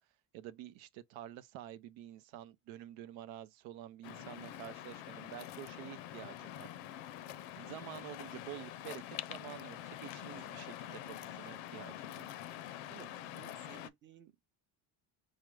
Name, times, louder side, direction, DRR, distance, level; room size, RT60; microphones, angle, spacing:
voice 1, 0.3-6.9 7.6-12.3, right 12 dB, 85° right, 0.6 m, -49 dB
Waves surf, 4.0-13.9, left 12 dB, 80° left, 0.6 m, -46 dB
voice 2, 4.1-4.5 7.6-7.8 12.9-14.5, right 7 dB, 25° right, 0.7 m, -57 dB
4.8 x 2.1 x 3.1 m
cardioid pair, 145°, 46 cm